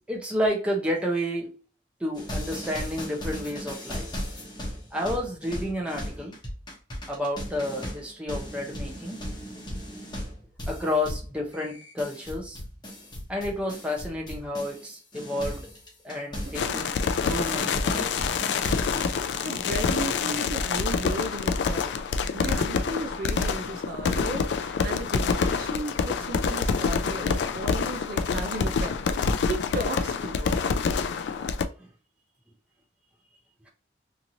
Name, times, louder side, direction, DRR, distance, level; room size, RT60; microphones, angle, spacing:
voice 1, 0.1-1.5 2.0-4.1 4.9-6.4 7.1-9.2 10.7-12.6 13.3-15.7 16.0-16.9 17.2-18.3 18.9-19.1, left 1 dB, 5° right, 0.6 m, -30 dB
sound 1, 2.1-14.9 15.1-19.5, equal, 25° left, 0.9 m, -37 dB
sound 2, 16.5-31.6, left 5 dB, 65° left, 0.3 m, -27 dB
voice 2, 16.5-16.9 19.4-21.9 22.3-28.9 29.4-30.5, right 2 dB, 50° right, 0.4 m, -35 dB
2.9 x 2.6 x 2.6 m
head